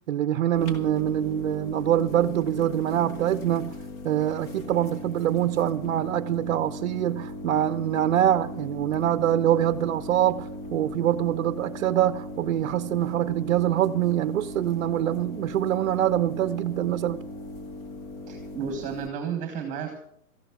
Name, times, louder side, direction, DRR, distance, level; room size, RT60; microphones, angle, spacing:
voice 1, 0.0-3.7 4.0-17.2, right 12 dB, 60° right, 0.8 m, -24 dB
sound 1, 0.5-19.1, left 1 dB, 25° left, 1.5 m, -38 dB
voice 2, 18.3-20.0, right 7 dB, 20° right, 2.0 m, -32 dB
14.5 x 11.0 x 6.0 m
hypercardioid pair, 160°, 41 cm